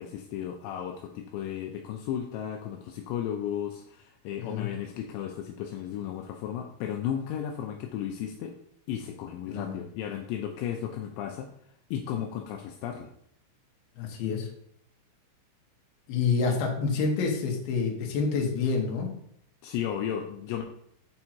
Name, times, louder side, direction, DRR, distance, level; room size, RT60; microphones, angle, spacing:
voice 1, 0.0-8.5 8.9-11.5 11.9-13.1 19.6-20.6, left 9 dB, 85° left, 3 dB, 2.5 m, -34 dB
voice 2, 4.4-4.7 9.5-9.8 14.0-14.5 16.1-19.1, left 5 dB, 65° left, 0 dB, 2.7 m, -28 dB
8.6 x 3.6 x 4.4 m, 0.70 s
omnidirectional pair, 5.6 m